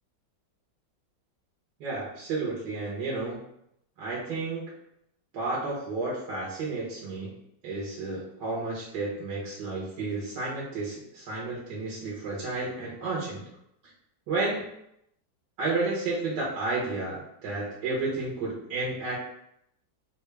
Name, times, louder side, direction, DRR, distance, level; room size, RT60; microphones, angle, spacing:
voice 1, 1.8-3.4 4.0-4.7 5.3-7.3 7.6-13.4 14.3-14.6 15.6-19.2, right 3 dB, 70° right, -5 dB, 1.5 m, -31 dB
3.6 x 2.3 x 3.1 m, 0.77 s
omnidirectional pair, 2.0 m